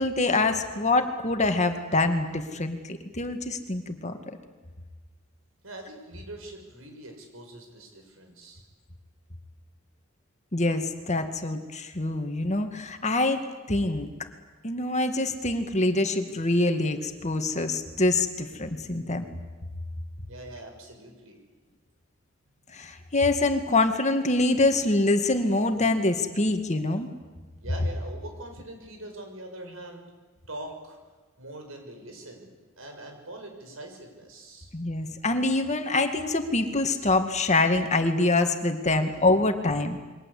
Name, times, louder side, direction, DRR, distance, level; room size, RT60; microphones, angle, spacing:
voice 1, 0.0-4.2 10.5-14.1 14.6-19.2 22.7-27.1 34.7-40.0, left 2 dB, 35° left, 7 dB, 2.1 m, -25 dB
voice 2, 5.6-8.6 20.3-21.4 27.6-30.0 30.5-31.0 31.4-34.7 38.9-39.1, right 1 dB, 80° right, 4 dB, 6.6 m, -43 dB
28.5 x 23.0 x 8.6 m, 1.3 s
head